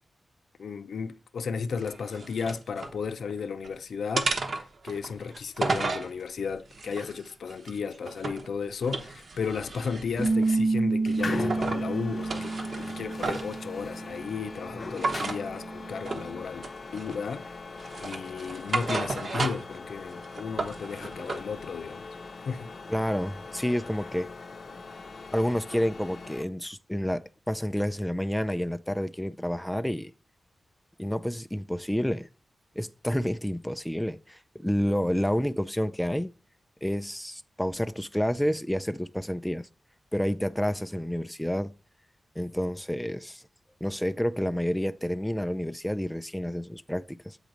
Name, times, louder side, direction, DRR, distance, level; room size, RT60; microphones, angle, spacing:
voice 1, 0.6-16.6 16.9-17.6 18.0-22.1 22.5-22.7, left 5 dB, 85° left, 0.5 m, -34 dB
sound 1, 1.8-3.0 3.4-3.7 4.2-6.1 6.7-8.5 8.8-10.6 11.1-11.8 12.2-13.6 15.0-15.4 16.1-16.3 16.6-17.3 17.8-19.8 20.1-21.4, right 3 dB, 55° right, 0.9 m, -33 dB
Bass guitar, 10.2-16.4, right 3 dB, 25° right, 0.8 m, -30 dB
sound 2, 11.2-26.4, left 3 dB, 50° left, 0.6 m, -40 dB
voice 2, 22.9-24.3 25.3-30.1 31.0-32.3 32.8-36.3 36.8-39.7 40.1-41.7 42.4-43.4 43.8-47.4, equal, 5° left, 0.3 m, -29 dB
8.1 x 3.1 x 5.0 m
wide cardioid pair, 150°, 0 cm